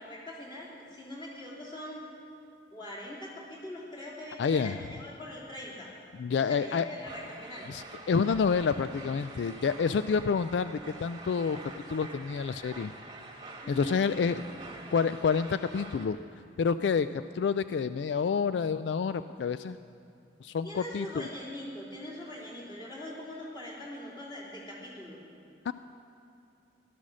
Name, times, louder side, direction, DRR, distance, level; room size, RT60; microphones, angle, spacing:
voice 1, 0.0-2.0 2.7-5.9 6.4-7.7 13.6-14.8 20.6-25.2, left 1 dB, 25° left, -7 dB, 3.4 m, -42 dB
voice 2, 4.4-4.8 6.2-6.9 7.7-11.6 11.9-12.9 13.7-14.4 14.9-16.2 16.6-19.8 20.4-21.3 25.7-25.8, left 5 dB, 80° left, 12 dB, 0.3 m, -28 dB
sound 1, 7.0-16.1, right 2 dB, 25° right, 1.3 m, -46 dB
15.5 x 12.0 x 6.3 m, 2.5 s
head